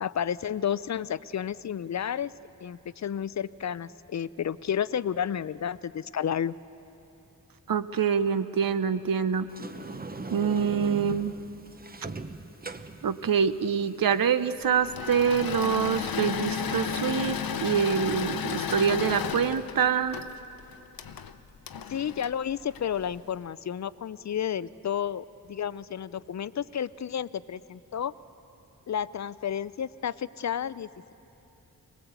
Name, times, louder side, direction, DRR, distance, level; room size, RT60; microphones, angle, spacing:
voice 1, 0.0-2.3 2.6-6.5 21.9-28.1 28.9-31.1, left 8 dB, 55° left, 17 dB, 0.4 m, -31 dB
voice 2, 7.7-9.5 10.3-11.4 13.0-20.2, right 7 dB, 75° right, 12 dB, 0.8 m, -25 dB
Sliding door, 9.5-14.6, right 3 dB, 25° right, 0.8 m, -41 dB
Engine / Mechanisms, 14.8-23.2, left 7 dB, 90° left, 0.8 m, -33 dB
23.0 x 19.5 x 8.1 m, 3.0 s
wide cardioid pair, 120°, 34 cm